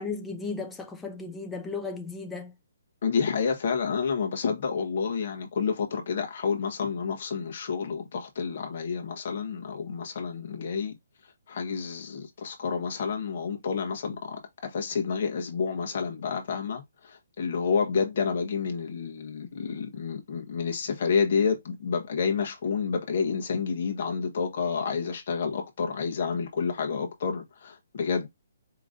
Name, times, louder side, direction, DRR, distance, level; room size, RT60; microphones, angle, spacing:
voice 1, 0.0-2.5, left 4 dB, 5° left, 0.3 m, -35 dB
voice 2, 3.0-10.9 11.5-28.3, left 5 dB, 40° left, 1.1 m, -29 dB
4.9 x 3.0 x 2.6 m
hypercardioid pair, 175°, 0 cm